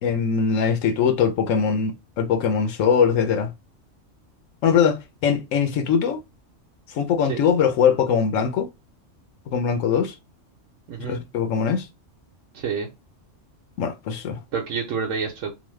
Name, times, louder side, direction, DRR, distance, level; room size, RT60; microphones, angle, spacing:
voice 1, 0.0-3.5 4.6-6.2 6.9-8.7 9.5-10.1 11.0-11.9 13.8-14.4, left 6 dB, 90° left, 1.0 m, -21 dB
voice 2, 10.9-11.2 12.5-12.9 14.5-15.5, right 6 dB, 75° right, 1.0 m, -28 dB
3.1 x 2.1 x 3.1 m
omnidirectional pair, 1.3 m